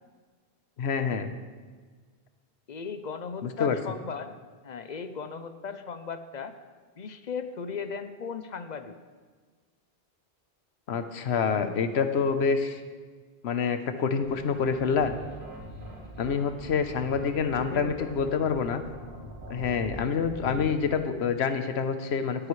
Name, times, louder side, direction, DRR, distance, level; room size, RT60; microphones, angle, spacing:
voice 1, 0.8-1.3 3.4-3.8 10.9-12.8 13.4-15.1 16.2-18.8 19.5-22.5, left 6 dB, 80° left, 9 dB, 1.1 m, -27 dB
voice 2, 2.7-4.4 4.6-6.6 7.0-8.9 17.6-18.1, left 5 dB, 50° left, 10 dB, 0.7 m, -37 dB
sound 1, 14.2-20.9, equal, 55° right, 3.8 m, -43 dB
18.5 x 9.9 x 3.2 m, 1.5 s
omnidirectional pair, 1.1 m